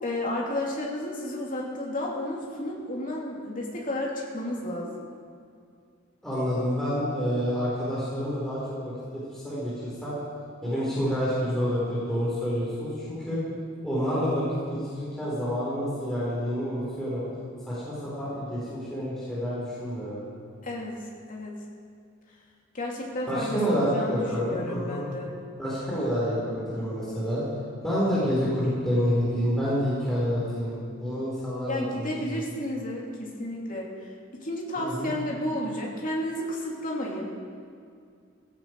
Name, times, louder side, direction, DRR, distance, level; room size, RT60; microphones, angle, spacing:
voice 1, 0.0-5.0 20.6-21.6 22.7-25.3 31.7-37.3, left 1 dB, 40° left, -3 dB, 2.8 m, -32 dB
voice 2, 6.2-8.9 9.3-10.1 10.6-13.4 13.8-17.2 17.7-20.2 23.3-25.0 25.6-27.4 27.8-32.4 34.8-35.1, equal, ahead, -10 dB, 4.6 m, -28 dB
16.0 x 16.0 x 4.7 m, 2.3 s
head